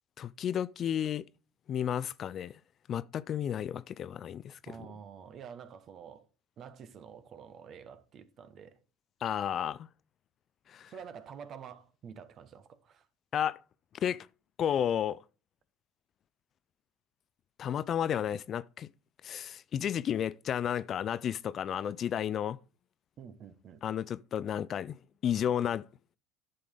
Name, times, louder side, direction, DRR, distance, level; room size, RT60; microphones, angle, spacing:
voice 1, 0.2-1.2 1.7-2.6 2.9-4.8 9.2-9.9 10.7-10.9 13.3-13.6 14.0-14.3 14.6-15.2 17.6-18.9 19.2-22.6 23.8-25.9, left 9 dB, 45° left, 0.4 m, -32 dB
voice 2, 4.6-6.2 6.6-8.8 10.9-13.1 23.2-23.8, right 7 dB, 45° right, 1.3 m, -48 dB
10.5 x 6.8 x 3.8 m
supercardioid pair, 95°, 0 cm